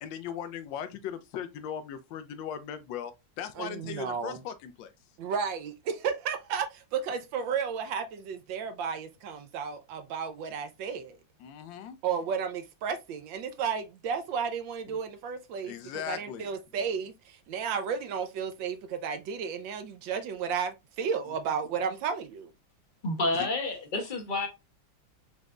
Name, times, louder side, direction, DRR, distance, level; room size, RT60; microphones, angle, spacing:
voice 1, 0.0-4.9 11.4-12.0 14.9-15.0 15.6-16.5 21.3-21.4, left 9 dB, 75° left, 1.3 m, -38 dB
voice 2, 3.6-4.4 5.2-11.2 12.0-22.5, right 6 dB, 75° right, 1.3 m, -33 dB
voice 3, 23.0-24.5, left 2 dB, 40° left, 0.7 m, -29 dB
5.2 x 3.3 x 2.4 m
omnidirectional pair, 2.2 m